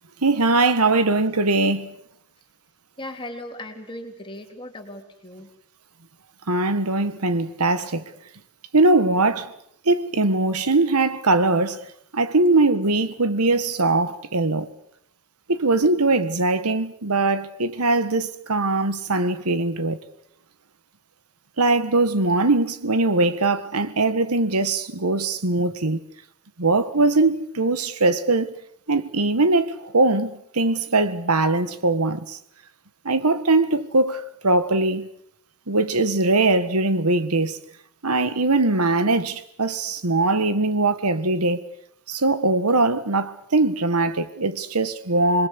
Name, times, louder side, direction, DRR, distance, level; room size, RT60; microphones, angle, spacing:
voice 1, 0.2-1.9 6.5-8.0 8.7-9.5 9.8-11.8 12.1-14.7 15.5-20.0 21.6-26.0 26.6-28.5 28.9-32.4 33.0-35.1 35.7-37.6 38.0-41.6 42.1-45.5, right 2 dB, 90° right, 1.6 m, -21 dB
voice 2, 3.0-5.5, left 1 dB, 20° left, 3.4 m, -37 dB
27.0 x 21.0 x 8.2 m
head